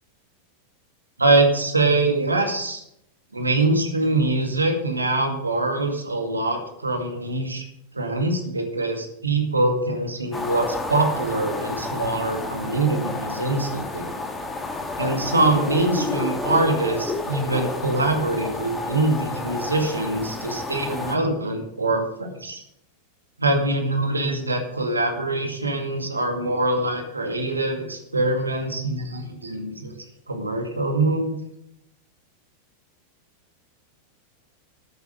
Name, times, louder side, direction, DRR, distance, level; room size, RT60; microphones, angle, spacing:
voice 1, 1.2-2.8 3.3-7.6 7.9-14.1 15.0-22.6 23.4-31.4, right 2 dB, 80° right, 3 dB, 2.1 m, -24 dB
sound 1, 10.3-21.2, left 3 dB, 15° left, 1.6 m, -30 dB
13.5 x 8.2 x 5.1 m, 0.77 s
figure-of-eight pair, 90°, 0 cm